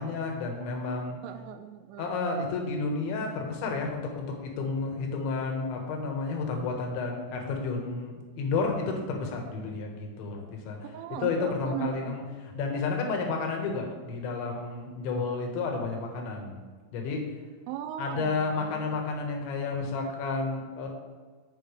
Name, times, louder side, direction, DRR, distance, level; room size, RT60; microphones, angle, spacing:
voice 1, 0.0-1.2 2.0-10.9 11.2-12.2 12.5-16.6 16.9-17.3 18.0-20.9, left 4 dB, 70° left, 2 dB, 3.6 m, -31 dB
voice 2, 1.2-2.2 10.9-12.2 17.7-18.9, right 10 dB, 90° right, 7 dB, 3.2 m, -38 dB
17.0 x 5.8 x 3.3 m, 1.5 s
omnidirectional pair, 5.7 m